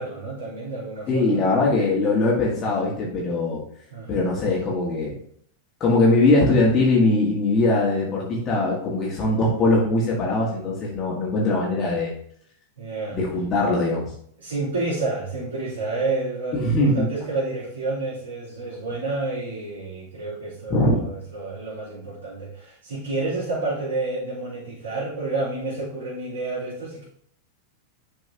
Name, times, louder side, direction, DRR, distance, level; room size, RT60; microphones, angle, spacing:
voice 1, 0.0-1.4 3.9-4.3 12.8-13.2 14.4-27.0, right 3 dB, 65° right, -10 dB, 3.1 m, -29 dB
voice 2, 1.1-3.6 4.1-5.1 5.8-12.1 13.1-14.1 16.5-17.1 20.7-20.9, left 2 dB, 30° left, -4 dB, 1.8 m, -21 dB
11.0 x 4.5 x 2.9 m, 0.65 s
figure-of-eight pair, 90°, 0 cm